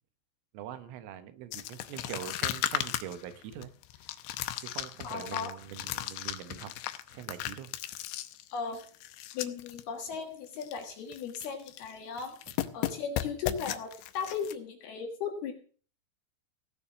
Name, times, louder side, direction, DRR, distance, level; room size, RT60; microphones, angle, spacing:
voice 1, 0.5-3.7 4.6-6.7 7.1-7.7, right 11 dB, 80° right, 10 dB, 3.6 m, -43 dB
sound 1, 1.5-9.8 10.1-10.2 10.5-10.8 11.1-11.9 12.2-14.5, left 13 dB, 80° left, 2.6 m, -36 dB
voice 2, 5.0-5.5 8.5-8.8 9.3-12.4 12.7-15.5, left 6 dB, 60° left, 4 dB, 3.0 m, -36 dB
17.0 x 7.3 x 7.2 m, 0.42 s
omnidirectional pair, 5.9 m